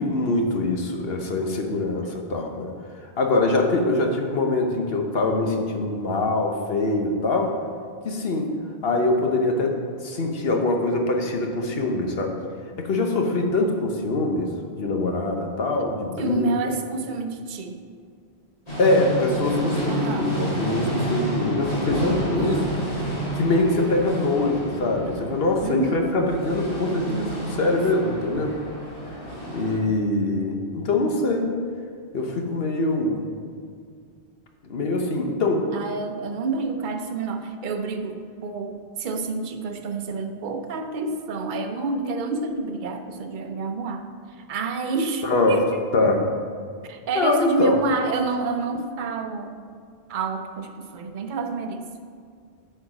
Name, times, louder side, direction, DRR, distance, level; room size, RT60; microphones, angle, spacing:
voice 1, 0.0-2.7 3.2-7.5 8.0-8.5 8.8-9.8 10.0-12.4 12.8-16.7 18.8-22.7 23.4-28.5 29.5-31.5 32.1-33.2 34.6-35.6 45.2-45.6 45.9-46.2 47.1-47.8, left 2 dB, 70° left, 2 dB, 1.2 m, -23 dB
voice 2, 16.2-17.8 19.9-20.3 25.6-26.1 35.7-44.0 44.5-45.7 46.8-49.5 50.1-51.9, right 3 dB, 55° right, 6 dB, 0.8 m, -29 dB
sound 1, 18.7-29.7, right 1 dB, 40° left, 2.6 m, -30 dB
9.2 x 4.5 x 5.9 m, 2.1 s
omnidirectional pair, 1.1 m